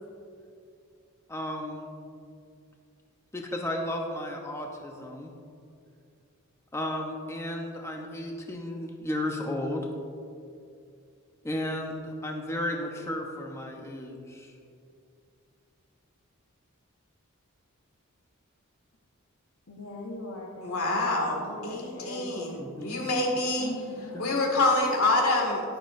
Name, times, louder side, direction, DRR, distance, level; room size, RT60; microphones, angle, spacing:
voice 1, 1.3-1.9 3.3-5.3 6.7-9.9 11.4-14.5 22.6-23.0 24.1-24.2, left 1 dB, 15° left, 1 dB, 0.7 m, -34 dB
voice 2, 19.7-22.6 23.6-24.4, left 2 dB, 60° left, -2 dB, 1.0 m, -41 dB
voice 3, 20.6-23.7 24.2-25.6, left 2 dB, 85° left, -1 dB, 2.1 m, -26 dB
11.5 x 10.5 x 2.6 m, 2.4 s
head